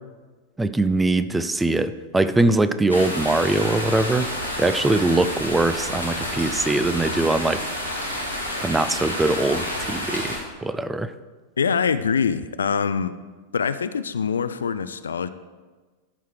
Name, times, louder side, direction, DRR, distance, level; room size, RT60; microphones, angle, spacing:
voice 1, 0.6-7.6 8.6-11.1, right 2 dB, 10° right, 12 dB, 0.4 m, -22 dB
sound 1, 2.9-10.4, left 1 dB, 90° right, 2.1 m, -29 dB
voice 2, 11.6-13.2 13.5-15.3, left 6 dB, 70° left, 13 dB, 0.3 m, -24 dB
13.0 x 4.6 x 4.6 m, 1.3 s
figure-of-eight pair, 90°, 0 cm